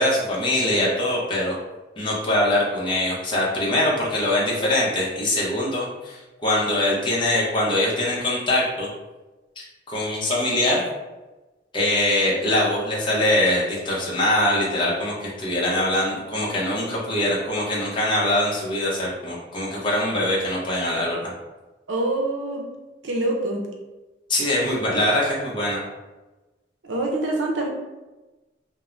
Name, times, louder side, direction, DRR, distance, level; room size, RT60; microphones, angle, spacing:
voice 1, 0.0-1.5 2.0-8.9 9.9-10.8 11.7-21.2 24.3-25.8, left 1 dB, 25° left, -5 dB, 0.7 m, -23 dB
voice 2, 21.9-22.6 23.0-23.6 26.8-27.7, right 2 dB, 80° right, 0 dB, 0.5 m, -25 dB
2.5 x 2.0 x 3.1 m, 1.1 s
head